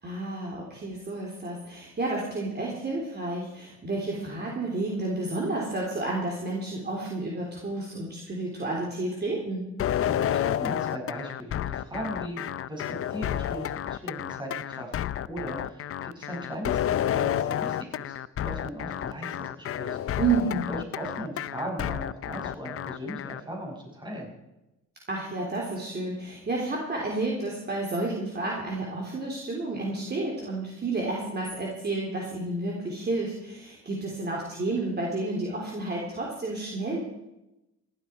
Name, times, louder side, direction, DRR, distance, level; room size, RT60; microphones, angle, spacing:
voice 1, 0.0-9.7 20.2-20.7 25.1-37.0, right 2 dB, 35° right, -2 dB, 3.6 m, -31 dB
sound 1, 9.8-23.4, left 10 dB, 50° left, 0.6 m, -30 dB
voice 2, 10.1-12.4 12.7-14.9 15.3-18.2 18.4-20.2 20.7-24.3, equal, 15° right, -1 dB, 6.7 m, -38 dB
15.5 x 12.5 x 4.6 m, 0.94 s
cardioid pair, 90°, 30 cm